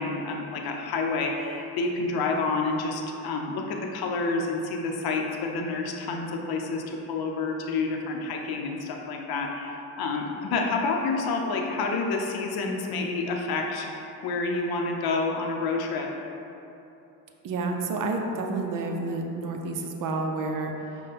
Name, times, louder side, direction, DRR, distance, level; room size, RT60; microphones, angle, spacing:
voice 1, 0.0-16.1, left 3 dB, 50° left, 1 dB, 0.7 m, -29 dB
voice 2, 17.4-21.0, right 3 dB, 45° right, 3 dB, 0.6 m, -30 dB
5.2 x 2.3 x 4.1 m, 2.9 s
hypercardioid pair, 65°, 47 cm